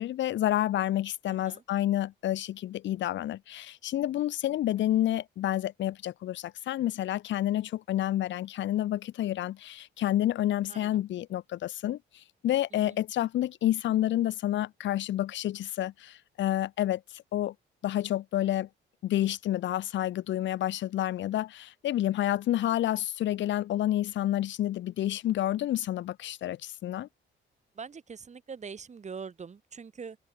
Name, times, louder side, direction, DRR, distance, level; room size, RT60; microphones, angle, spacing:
voice 1, 0.0-17.5 17.8-18.7 19.0-27.1, left 13 dB, 70° left, 0.8 m, -29 dB
voice 2, 1.3-1.6 10.7-11.0 12.7-13.0 27.7-30.2, right 5 dB, 35° right, 1.7 m, -43 dB
cardioid pair, 90°, 20 cm